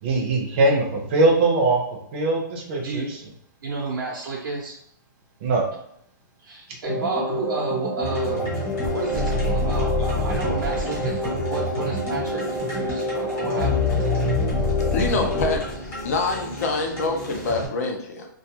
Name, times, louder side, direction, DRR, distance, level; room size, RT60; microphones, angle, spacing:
voice 1, 0.0-1.8 2.1-3.2 5.4-5.6, right 2 dB, 35° right, 1 dB, 0.6 m, -21 dB
voice 2, 3.6-4.8 6.4-8.5 8.9-13.7, right 3 dB, 80° right, -3 dB, 0.7 m, -31 dB
sound 1, 6.8-15.6, left 1 dB, 5° left, 0.3 m, -28 dB
sound 2, 8.0-17.7, left 2 dB, 20° left, 1.1 m, -28 dB
voice 3, 14.9-15.6 16.0-18.3, left 3 dB, 50° left, 2 dB, 0.6 m, -25 dB
2.4 x 2.3 x 2.8 m, 0.71 s
hypercardioid pair, 165°, 11 cm